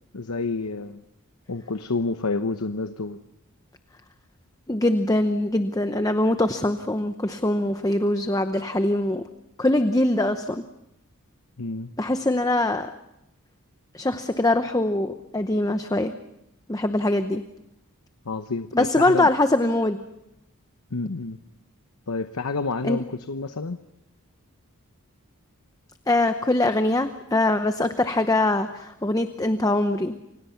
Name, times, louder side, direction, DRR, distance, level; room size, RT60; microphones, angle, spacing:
voice 1, 0.1-1.0 1.5-3.2 11.6-11.9 18.2-19.3 20.9-21.4 22.1-23.8, left 3 dB, 75° left, 10 dB, 0.9 m, -29 dB
voice 2, 4.7-9.2 9.6-10.6 12.0-12.9 13.9-16.1 16.7-17.4 18.7-20.0 22.8-23.0 26.1-30.1, left 2 dB, 15° left, 8 dB, 0.8 m, -23 dB
29.5 x 25.5 x 5.8 m, 0.87 s
head